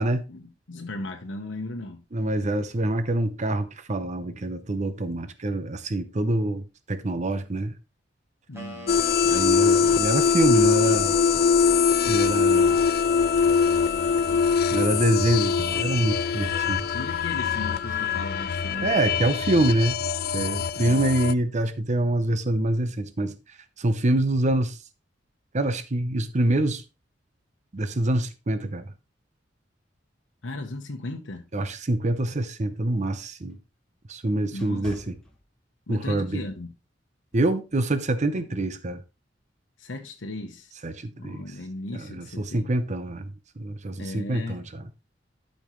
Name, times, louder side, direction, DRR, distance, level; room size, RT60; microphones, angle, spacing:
voice 1, 0.3-2.0 8.5-9.0 16.9-18.9 20.8-21.0 30.4-31.4 34.5-35.0 35.9-36.7 38.3-38.5 39.8-40.7 41.2-42.7 44.0-44.6, left 2 dB, 85° left, 1.0 m, -36 dB
voice 2, 2.1-7.7 9.2-11.2 12.1-12.8 14.7-16.9 18.8-20.0 20.3-23.3 23.8-24.8 25.5-26.8 27.7-28.9 31.5-33.6 34.1-35.1 35.9-36.4 37.3-39.0 40.8-41.4 41.9-44.7, right 1 dB, 40° right, 0.7 m, -25 dB
sound 1, 8.5-11.6 12.1-15.1 15.7-19.2, left 1 dB, 15° right, 2.4 m, -43 dB
sound 2, 8.9-21.3, left 6 dB, 55° left, 0.4 m, -23 dB
sound 3, 32.6-36.0 36.5-36.7 37.3-37.6, equal, 5° left, 1.7 m, -48 dB
12.5 x 5.3 x 3.1 m
head